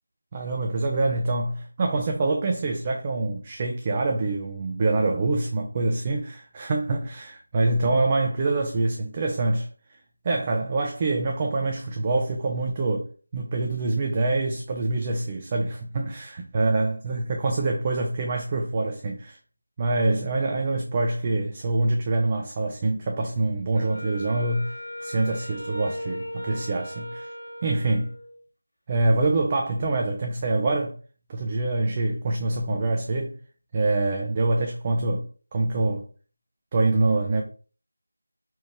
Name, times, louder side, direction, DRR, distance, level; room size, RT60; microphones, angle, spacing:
voice 1, 0.3-9.7 10.2-19.4 19.8-24.7 25.0-27.3 27.6-28.1 28.9-30.9 31.3-33.3 33.7-35.3 35.5-36.1 36.7-37.4, right 2 dB, 20° right, 0.4 m, -25 dB
Wind instrument woodwind instrument, 23.7-28.4, equal, 75° left, 1.5 m, -37 dB
4.3 x 3.0 x 3.4 m
figure-of-eight pair, 170°, 0 cm